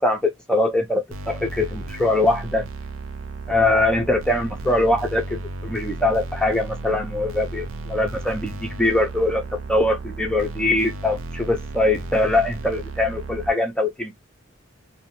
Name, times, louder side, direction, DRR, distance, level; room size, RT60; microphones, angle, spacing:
voice 1, 0.0-2.6 3.5-14.1, left 2 dB, 5° left, 0.5 m, -22 dB
sound 1, 1.1-13.5, right 2 dB, 75° right, 0.5 m, -34 dB
2.6 x 2.2 x 2.7 m
head